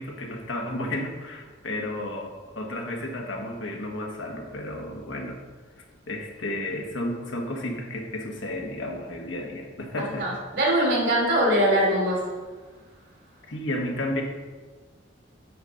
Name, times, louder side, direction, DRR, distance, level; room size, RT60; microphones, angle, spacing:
voice 1, 0.0-5.4 6.1-10.4 13.5-14.2, left 1 dB, 75° left, 1 dB, 1.4 m, -32 dB
voice 2, 10.2-12.3, right 1 dB, 55° right, -2 dB, 2.7 m, -22 dB
9.4 x 4.1 x 6.4 m, 1.4 s
head